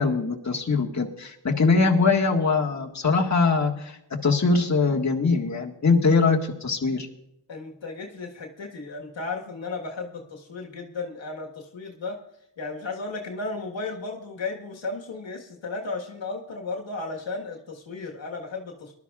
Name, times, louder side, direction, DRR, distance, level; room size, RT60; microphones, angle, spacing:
voice 1, 0.0-7.1, left 4 dB, 40° left, 0 dB, 1.8 m, -22 dB
voice 2, 7.5-12.2 12.6-18.9, left 3 dB, 80° left, 0 dB, 1.7 m, -34 dB
20.5 x 12.0 x 2.4 m, 0.80 s
cardioid pair, 50°, 44 cm